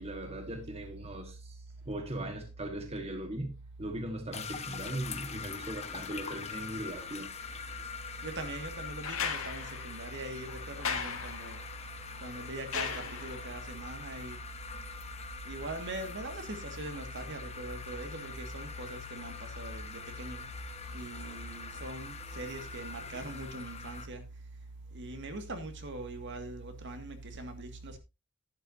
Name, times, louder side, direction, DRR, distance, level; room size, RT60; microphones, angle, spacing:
voice 1, 0.0-7.3, right 1 dB, 30° right, 1.4 m, -39 dB
sound 1, 4.3-24.1, left 5 dB, 30° left, 1.1 m, -43 dB
voice 2, 8.2-11.6 12.2-14.4 15.5-20.4 20.9-24.2 24.9-28.0, right 2 dB, 55° right, 2.0 m, -41 dB
sound 2, 9.0-13.6 15.2-15.3, left 6 dB, 70° left, 1.9 m, -38 dB
11.5 x 11.5 x 2.7 m
head